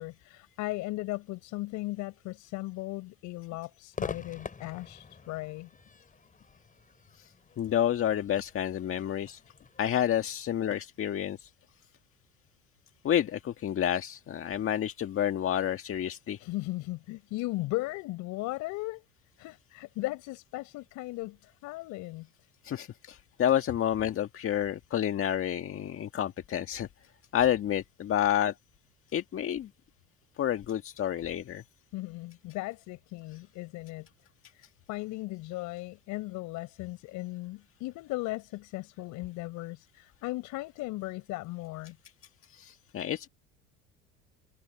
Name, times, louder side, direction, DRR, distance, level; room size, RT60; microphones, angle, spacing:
voice 1, 0.0-5.7 16.4-19.0 19.4-22.3 31.9-34.1 34.5-42.0, left 20 dB, 70° left, 5.3 m, -37 dB
Crowd / Fireworks, 3.9-11.3, left 5 dB, 25° left, 7.7 m, -45 dB
voice 2, 7.6-9.4 9.8-11.5 13.0-16.4 22.6-26.9 27.3-28.5 29.1-29.7 30.4-31.6 42.5-43.3, left 10 dB, 45° left, 1.7 m, -29 dB
supercardioid pair, 85°, 31 cm